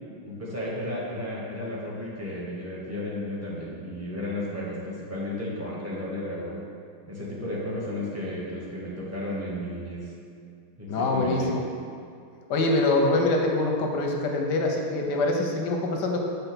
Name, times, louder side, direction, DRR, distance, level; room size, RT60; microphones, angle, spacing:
voice 1, 0.2-6.6 7.1-10.0 10.8-11.5, left 1 dB, 10° right, -6 dB, 0.7 m, -33 dB
voice 2, 10.9-11.6 12.5-16.2, left 2 dB, 65° left, 1 dB, 1.1 m, -24 dB
6.9 x 3.4 x 6.0 m, 2.4 s
omnidirectional pair, 2.3 m